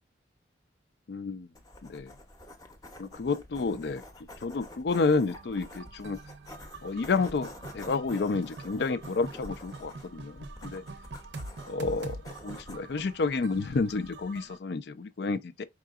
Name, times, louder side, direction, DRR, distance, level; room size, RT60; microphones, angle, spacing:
voice 1, 1.1-1.5 1.8-2.1 3.0-4.0 4.4-6.2 6.8-10.8 11.7-15.6, left 4 dB, 60° left, 0.4 m, -30 dB
sound 1, 1.5-14.3, left 1 dB, 20° left, 0.7 m, -49 dB
sound 2, 5.3-14.6, right 3 dB, 70° right, 0.6 m, -45 dB
4.8 x 3.7 x 2.3 m
head